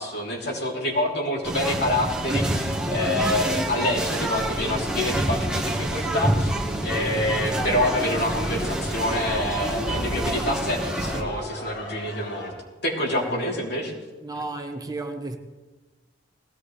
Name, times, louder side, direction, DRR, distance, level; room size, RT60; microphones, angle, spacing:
voice 1, 0.0-6.5 6.8-12.5 12.8-14.0, left 1 dB, 65° left, 3.3 m, -27 dB
sound 1, 1.4-11.2, right 1 dB, 5° right, 1.4 m, -27 dB
sound 2, 7.0-12.5, left 1 dB, 85° left, 6.4 m, -38 dB
voice 2, 13.1-13.4 14.2-15.4, right 2 dB, 20° right, 1.0 m, -33 dB
19.5 x 16.5 x 3.3 m
head